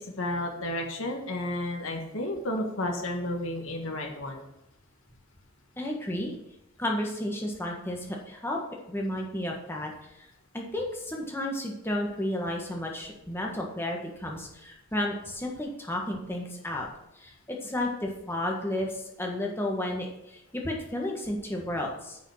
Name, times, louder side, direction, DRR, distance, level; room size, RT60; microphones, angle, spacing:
voice 1, 0.0-4.5, left 1 dB, 70° left, 2 dB, 1.5 m, -32 dB
voice 2, 5.8-6.3 6.8-8.6 8.9-9.9 10.2-10.3 10.5-16.9 17.1-22.2, left 1 dB, 10° left, -1 dB, 1.6 m, -32 dB
9.8 x 5.5 x 6.3 m, 0.91 s
head